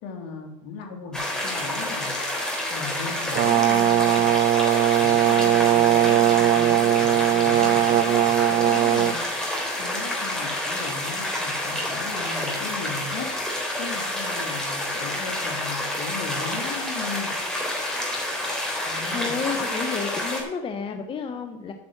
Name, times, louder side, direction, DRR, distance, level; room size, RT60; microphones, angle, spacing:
voice 1, 0.0-4.7 5.0-13.3 13.8-17.3 18.9-19.3, left 5 dB, 70° left, 3 dB, 2.8 m, -37 dB
sound 1, 1.1-20.4, left 1 dB, 5° left, 3.8 m, -29 dB
Brass instrument, 3.3-9.2, right 12 dB, 55° right, 0.9 m, -19 dB
voice 2, 19.1-21.7, left 6 dB, 35° left, 6 dB, 1.0 m, -31 dB
9.4 x 6.3 x 7.8 m, 1.1 s
supercardioid pair, 100°, 16 cm